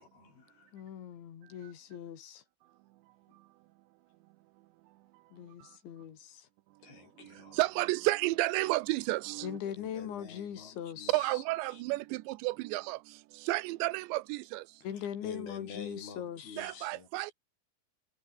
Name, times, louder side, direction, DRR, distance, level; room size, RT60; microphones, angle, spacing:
voice 1, 0.0-0.8 3.3-3.4 6.8-7.6 9.6-11.3 11.7-11.8 14.9-17.3, left 5 dB, 55° left, 7.2 m, -49 dB
voice 2, 0.7-2.4 5.3-6.5 9.4-11.4 14.8-16.9, left 9 dB, 75° left, 5.6 m, -41 dB
voice 3, 7.6-9.6 11.1-13.0 13.5-14.6 16.6-17.3, right 20 dB, 80° right, 2.9 m, -31 dB
omnidirectional pair, 5.3 m